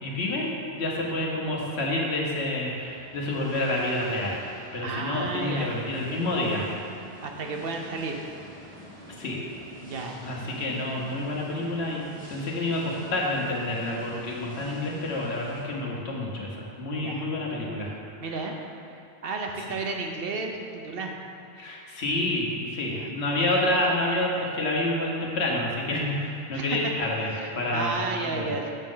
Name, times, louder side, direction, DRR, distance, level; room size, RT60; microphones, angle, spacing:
voice 1, 0.0-4.4 4.7-6.7 9.2-9.4 10.2-17.9 18.3-18.4 19.6-19.7 21.6-27.9 28.2-28.5, left 1 dB, 80° left, -3 dB, 1.4 m, -28 dB
sound 1, 1.7-15.6, equal, 10° left, 1.5 m, -47 dB
voice 2, 4.8-5.8 7.2-8.2 9.8-10.2 17.0-17.3 18.2-18.5 18.9-21.1 22.9-23.1 26.5-26.9 27.4-28.7, right 3 dB, 65° right, 2 dB, 0.8 m, -32 dB
6.6 x 6.2 x 3.8 m, 2.4 s
omnidirectional pair, 1.1 m